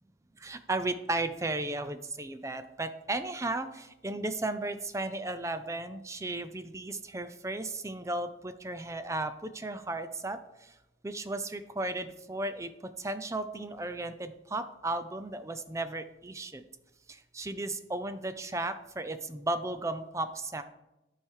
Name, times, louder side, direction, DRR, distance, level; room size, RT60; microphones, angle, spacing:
voice 1, 0.4-10.7 11.0-12.7 13.0-16.6 17.1-20.6, right 2 dB, 15° right, 10 dB, 0.4 m, -35 dB
12.0 x 4.8 x 4.7 m, 0.95 s
head